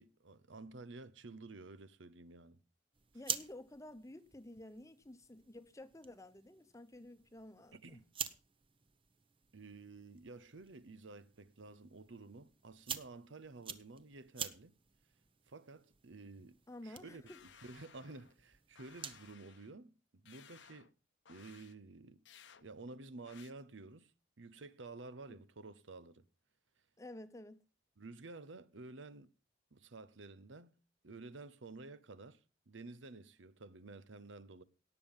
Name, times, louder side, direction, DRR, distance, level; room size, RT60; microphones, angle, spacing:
voice 1, 0.0-2.6 7.7-8.0 9.5-14.7 15.5-16.6 16.8-17.2 17.6-19.9 20.2-20.9 21.3-22.2 22.6-24.1 24.4-26.2 28.0-29.3 29.7-30.7 31.0-32.4 32.7-34.6, right 3 dB, 85° right, 0.9 m, -52 dB
sound 1, 2.9-19.3, right 7 dB, 30° right, 0.8 m, -49 dB
voice 2, 3.1-8.0 16.7-17.4 25.3-25.4 27.0-27.6, left 1 dB, 15° left, 0.9 m, -52 dB
sound 2, 17.3-18.4 18.8-19.7 20.3-20.9 21.3-21.7 22.3-22.6 23.3-23.5, left 8 dB, 75° left, 0.9 m, -60 dB
18.0 x 7.0 x 5.4 m
head